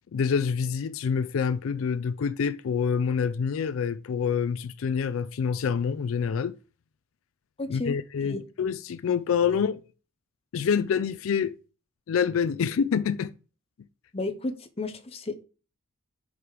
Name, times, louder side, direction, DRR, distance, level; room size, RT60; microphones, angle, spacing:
voice 1, 0.1-6.5 7.7-9.8 10.5-11.6 12.1-13.3, left 6 dB, 70° left, 0.4 m, -26 dB
voice 2, 7.6-7.9 8.2-8.4 9.5-9.6 14.1-15.4, left 2 dB, 30° left, 0.7 m, -33 dB
5.1 x 4.7 x 4.8 m
head